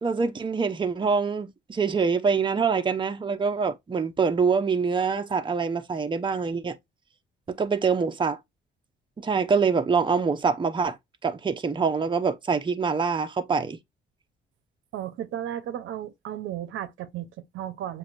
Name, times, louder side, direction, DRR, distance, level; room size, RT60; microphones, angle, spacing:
voice 1, 0.0-6.8 7.5-8.4 9.2-11.0 11.2-13.8, right 5 dB, 25° right, 0.7 m, -25 dB
voice 2, 14.9-18.0, right 11 dB, 80° right, 0.7 m, -34 dB
7.2 x 2.7 x 2.5 m
cardioid pair, 90°, 20 cm